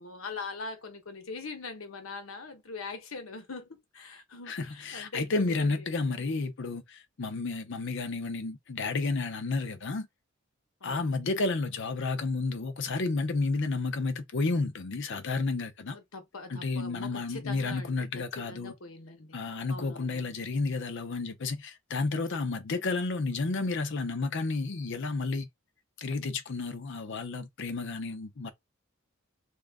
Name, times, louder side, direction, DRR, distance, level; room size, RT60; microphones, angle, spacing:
voice 1, 0.0-5.9 10.8-11.3 15.9-19.4 19.7-20.3, left 3 dB, 85° left, 1.0 m, -42 dB
voice 2, 4.5-10.1 10.8-16.0 16.5-18.7 19.3-25.5 26.0-28.5, left 3 dB, 60° left, 0.6 m, -31 dB
3.0 x 2.3 x 3.5 m
head